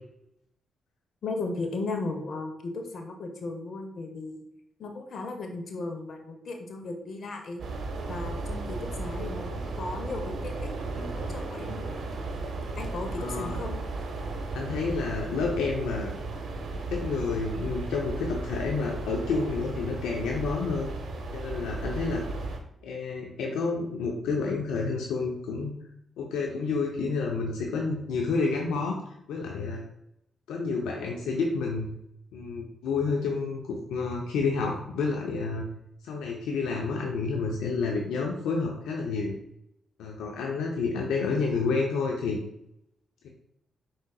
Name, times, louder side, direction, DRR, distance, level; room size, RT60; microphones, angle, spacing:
voice 1, 1.2-4.4 4.8-7.6 8.1-12.0 12.8-13.8, left 3 dB, 65° left, 4 dB, 0.9 m, -36 dB
sound 1, 7.6-22.6, right 3 dB, 65° right, 0.8 m, -35 dB
voice 2, 13.2-13.6 14.5-16.1 16.9-20.9 21.3-22.2 22.8-25.7 26.2-28.9 29.3-29.8 30.5-31.9 32.3-35.6 36.0-39.3 40.0-42.4, left 4 dB, 90° left, 0 dB, 0.6 m, -29 dB
4.9 x 3.9 x 2.3 m, 0.76 s
supercardioid pair, 55°, 0 cm